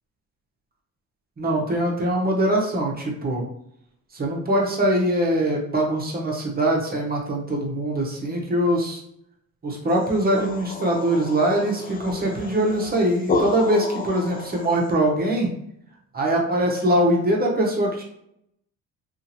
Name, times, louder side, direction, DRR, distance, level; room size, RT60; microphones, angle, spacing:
voice 1, 1.4-3.4 4.1-9.0 9.6-15.5 16.1-18.0, right 1 dB, 30° right, -1 dB, 0.9 m, -22 dB
sound 1, 10.0-14.9, left 3 dB, 30° left, 0.4 m, -31 dB
2.7 x 2.5 x 2.8 m, 0.75 s
cardioid pair, 90°, 30 cm